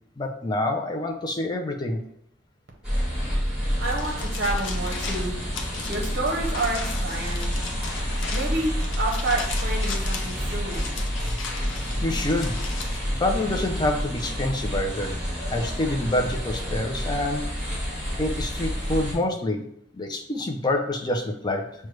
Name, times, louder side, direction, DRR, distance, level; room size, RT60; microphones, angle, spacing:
voice 1, 0.2-2.0 12.0-12.6 13.2-15.2 15.5-17.4 18.2-19.6 19.9-21.7, left 1 dB, 20° left, 3 dB, 0.4 m, -27 dB
sound 1, 2.8-19.1, equal, 5° right, 1.4 m, -29 dB
sound 2, 3.8-13.0, left 4 dB, 90° left, 0.6 m, -37 dB
voice 2, 3.8-5.4 5.9-7.5 8.3-10.9, right 2 dB, 55° right, 0 dB, 0.7 m, -29 dB
6.1 x 2.2 x 3.1 m, 0.71 s
head